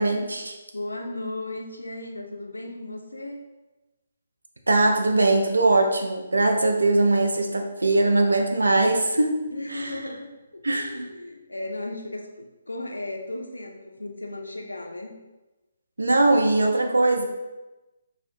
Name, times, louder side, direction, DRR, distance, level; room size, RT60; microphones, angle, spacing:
voice 1, 0.0-0.6 4.7-9.4 9.7-10.0 10.6-11.1 16.0-17.3, right 2 dB, 70° right, 3 dB, 0.3 m, -21 dB
voice 2, 0.7-3.5 9.5-15.1, left 2 dB, 80° left, 2 dB, 0.4 m, -35 dB
2.4 x 2.1 x 2.5 m, 1.1 s
figure-of-eight pair, 140°, 0 cm